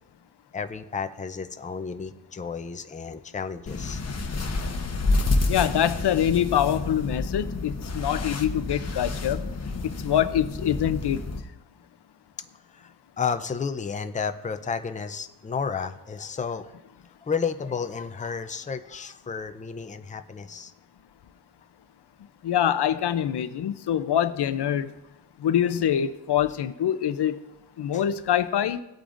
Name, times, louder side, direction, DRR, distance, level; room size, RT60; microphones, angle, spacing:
voice 1, 0.5-4.0 12.7-16.7 17.2-20.7 27.9-28.0, left 6 dB, 20° left, 9 dB, 0.5 m, -32 dB
sound 1, 3.7-11.4, left 2 dB, 35° left, 1.0 m, -29 dB
voice 2, 5.5-9.4 10.0-11.2 22.4-24.9 25.4-27.4 27.8-28.8, left 10 dB, 65° left, 12 dB, 0.6 m, -24 dB
18.0 x 8.5 x 2.5 m, 0.93 s
wide cardioid pair, 125°, 43 cm